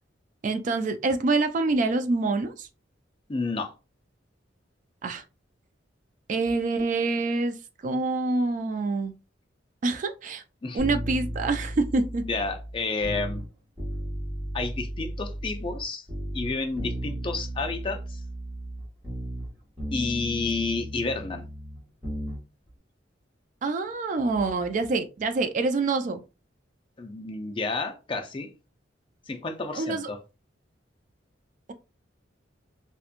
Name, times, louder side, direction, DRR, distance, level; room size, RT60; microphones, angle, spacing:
voice 1, 0.4-2.7 5.0-5.2 6.3-7.6 7.8-9.1 9.8-10.4 10.7-12.3 23.6-26.2 29.7-30.1, right 3 dB, 40° right, 0.3 m, -26 dB
voice 2, 3.3-3.7 10.6-10.8 12.3-13.4 14.5-16.0 16.3-18.2 19.9-21.5 27.0-28.5 29.3-30.2, left 3 dB, 25° left, 0.4 m, -30 dB
sound 1, 10.8-13.5 13.8-15.8 16.1-19.5 19.8-22.4 22.7-22.8, equal, 25° right, 1.0 m, -35 dB
2.9 x 2.2 x 2.4 m
head